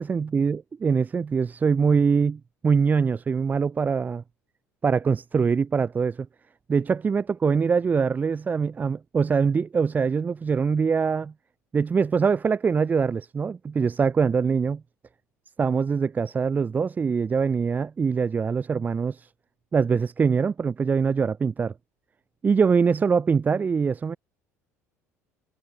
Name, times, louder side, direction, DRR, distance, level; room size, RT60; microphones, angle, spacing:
voice 1, 0.0-4.2 4.8-6.3 6.7-11.3 11.7-14.8 15.6-19.3 19.7-21.7 22.4-24.2, right 5 dB, 20° right, 0.4 m, -23 dB
figure-of-eight pair, 60°, 8 cm